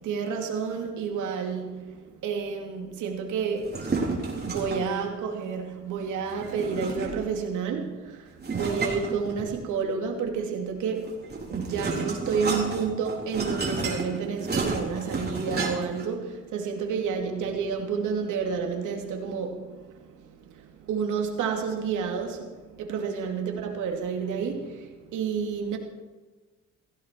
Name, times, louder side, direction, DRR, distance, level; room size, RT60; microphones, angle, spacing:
voice 1, 0.0-25.8, right 6 dB, 85° right, 2.6 m, -30 dB
sound 1, 3.6-5.0 6.4-7.4 8.4-9.8 11.0-16.0, right 3 dB, 35° right, 4.0 m, -31 dB
16.5 x 16.0 x 4.5 m
cardioid pair, 90°, 30 cm